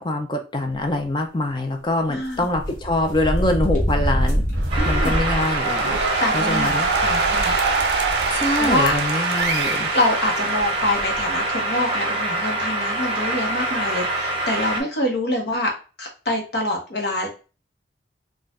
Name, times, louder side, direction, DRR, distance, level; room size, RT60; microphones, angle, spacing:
voice 1, 0.0-4.4 4.9-6.0 6.3-6.9 8.3-9.9, left 2 dB, 25° left, 4 dB, 0.5 m, -24 dB
voice 2, 2.1-2.5 4.8-5.2 6.2-6.7 7.0-7.6 8.6-9.0 9.9-15.7 16.0-17.3, left 1 dB, 65° left, 0 dB, 1.0 m, -25 dB
sound 1, 2.3-9.0 9.4-9.5 10.6-10.7 10.9-11.2, equal, 45° left, 1.2 m, -26 dB
sound 2, 4.6-11.4, right 4 dB, 70° right, 0.4 m, -26 dB
sound 3, 4.7-14.8, right 2 dB, 30° right, 0.8 m, -25 dB
4.3 x 2.4 x 2.4 m, 0.34 s
head